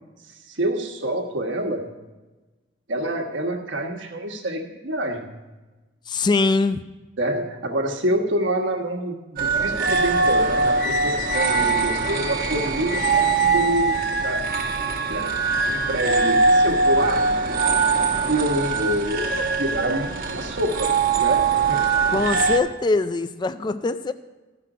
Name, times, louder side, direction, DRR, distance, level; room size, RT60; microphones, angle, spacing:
voice 1, 0.5-1.9 2.9-5.4 7.2-14.5 15.0-17.3 18.3-21.8, right 1 dB, 80° right, 3 dB, 1.4 m, -27 dB
voice 2, 6.1-6.8 19.3-19.4 22.1-24.1, left 3 dB, 25° left, 12 dB, 0.3 m, -22 dB
sound 1, 9.4-22.6, right 4 dB, 50° right, 1.1 m, -22 dB
15.0 x 5.9 x 5.0 m, 1.2 s
head